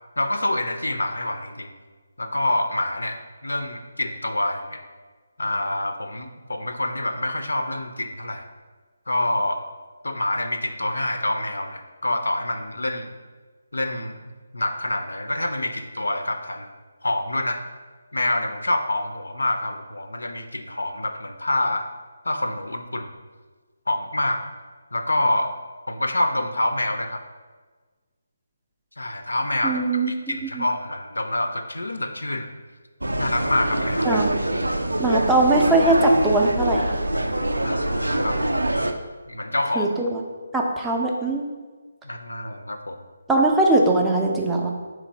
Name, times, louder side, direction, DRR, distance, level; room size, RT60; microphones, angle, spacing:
voice 1, 0.2-1.7 2.2-4.8 5.4-8.4 9.1-9.6 10.0-13.1 13.7-14.2 14.5-16.7 17.0-17.6 18.1-21.9 22.2-23.1 23.9-24.4 24.9-25.5 25.9-27.2 29.0-32.5 33.2-34.2 37.6-38.7 39.3-39.9 42.0-43.0, left 1 dB, 70° left, 7 dB, 0.4 m, -26 dB
voice 2, 29.6-30.1 30.4-30.7 34.0-34.3 35.0-37.0 39.8-40.2 40.5-41.5 43.3-44.7, right 2 dB, 5° right, -1 dB, 0.4 m, -20 dB
sound 1, 33.0-38.9, right 1 dB, 75° right, 0.4 m, -24 dB
3.7 x 3.1 x 4.6 m, 1.4 s
figure-of-eight pair, 150°, 0 cm